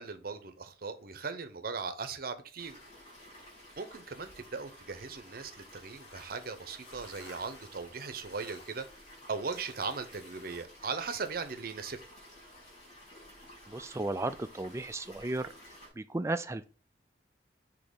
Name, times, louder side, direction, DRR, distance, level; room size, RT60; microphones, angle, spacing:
voice 1, 0.0-2.8 3.8-8.8 9.3-12.0, right 4 dB, 55° right, 0.7 m, -38 dB
sound 1, 2.6-15.9, equal, 35° left, 3.5 m, -53 dB
sound 2, 5.6-10.6, left 2 dB, 75° left, 1.6 m, -56 dB
voice 2, 13.7-15.5 16.0-16.6, right 2 dB, 15° right, 0.3 m, -34 dB
6.3 x 2.9 x 5.3 m
head